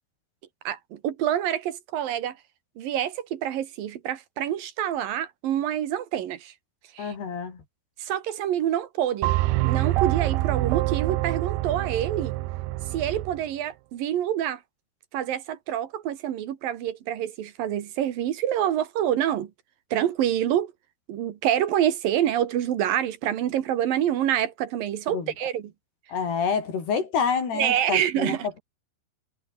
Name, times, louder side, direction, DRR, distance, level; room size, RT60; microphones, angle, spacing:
voice 1, 0.6-2.4 2.8-6.5 6.9-7.1 8.0-9.3 9.6-12.3 12.9-14.6 15.1-19.5 19.9-20.7 21.1-25.7 27.5-28.5, right 11 dB, 65° right, 3.1 m, -27 dB
voice 2, 7.0-7.6 25.1-25.3 26.1-28.6, left 6 dB, 80° left, 6.9 m, -28 dB
sound 1, 9.2-13.4, right 19 dB, 85° right, 2.7 m, -26 dB
omnidirectional pair, 4.6 m